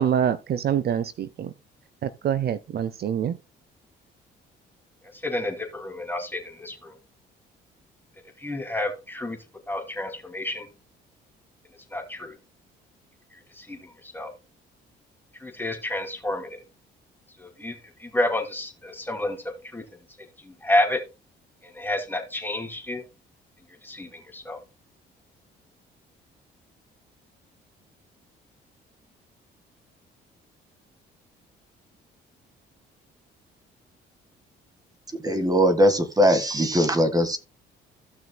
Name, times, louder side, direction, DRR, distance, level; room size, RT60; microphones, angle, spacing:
voice 1, 0.0-1.5 2.0-3.4, right 9 dB, 50° right, 0.6 m, -25 dB
voice 2, 5.1-6.9 8.4-9.4 9.7-10.7 11.9-12.4 13.3-14.3 15.4-16.6 17.4-19.8 20.2-21.0 21.6-23.0 23.8-24.6, left 1 dB, 10° left, 2.6 m, -30 dB
voice 3, 35.2-37.4, equal, 20° right, 1.7 m, -20 dB
15.5 x 6.1 x 2.2 m
supercardioid pair, 70°, 20 cm